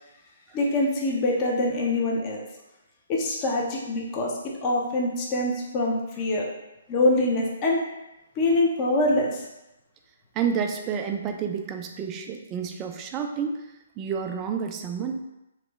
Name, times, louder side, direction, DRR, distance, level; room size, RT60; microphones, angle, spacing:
voice 1, 0.5-2.4 3.1-4.3 4.6-6.5 6.9-7.8 8.4-9.4, left 2 dB, 30° left, -2 dB, 0.5 m, -24 dB
voice 2, 10.4-13.6 14.0-15.2, right 6 dB, 25° right, 5 dB, 0.3 m, -29 dB
3.0 x 2.1 x 3.3 m, 0.94 s
hypercardioid pair, 145°, 0 cm